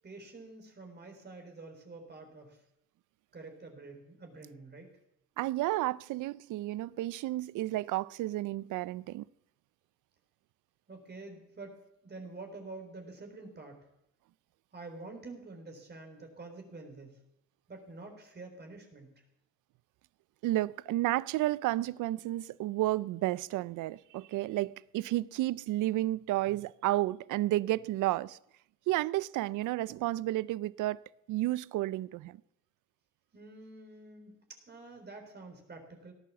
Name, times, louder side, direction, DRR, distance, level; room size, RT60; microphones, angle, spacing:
voice 1, 0.0-2.6 3.3-4.9 10.9-13.8 14.7-17.1 17.7-19.1 33.3-34.4 34.7-36.1, right 3 dB, 35° right, 3.8 m, -47 dB
voice 2, 5.4-9.3 20.4-28.4 28.9-31.0 31.3-32.4, right 16 dB, 85° right, 0.5 m, -31 dB
17.5 x 11.0 x 7.2 m
cardioid pair, 90°, 30 cm